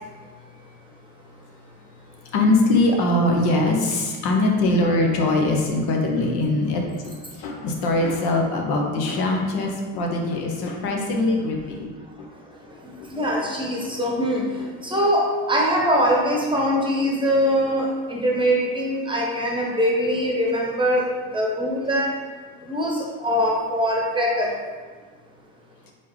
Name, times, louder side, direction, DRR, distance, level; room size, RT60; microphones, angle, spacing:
voice 1, 2.3-11.9, left 2 dB, 65° left, 1 dB, 0.9 m, -22 dB
voice 2, 13.1-14.4 14.9-15.2 15.5-21.0 21.3-22.1 22.7-22.9 23.2-24.5, equal, 10° right, -2 dB, 0.9 m, -22 dB
4.3 x 3.6 x 3.1 m, 1.4 s
supercardioid pair, 90°, 41 cm